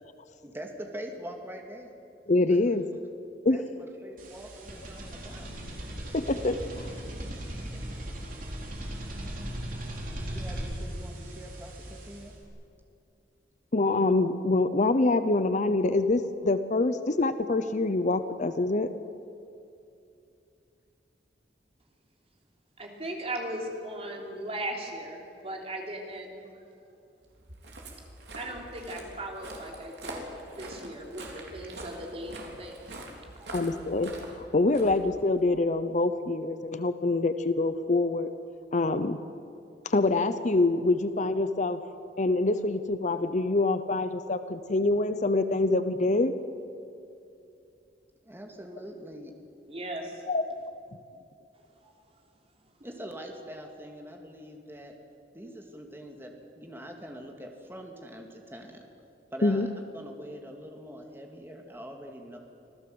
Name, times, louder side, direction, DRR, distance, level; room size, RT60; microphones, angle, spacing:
voice 1, 0.4-1.9 2.5-2.6 3.5-5.5 10.1-12.3 48.2-49.3 52.8-54.9 55.3-58.8 59.3-59.7 59.9-62.4, equal, 15° right, 2 dB, 2.3 m, -43 dB
voice 2, 2.3-2.8 3.4-3.6 6.1-7.0 13.7-18.9 33.5-38.3 38.7-39.2 39.8-41.8 42.2-46.3 50.3-50.4 59.4-59.7, left 2 dB, 45° left, 11 dB, 0.8 m, -25 dB
sound 1, 4.2-12.4, equal, 50° right, 4.1 m, -38 dB
voice 3, 22.8-26.4 28.3-30.2 30.6-32.8 33.4-33.5 49.7-50.2 51.8-51.9, right 1 dB, 35° right, 1 dB, 3.3 m, -38 dB
Walk footsteps, 27.3-35.6, right 2 dB, 70° right, 3.7 m, -44 dB
25.5 x 16.0 x 7.9 m, 2.6 s
head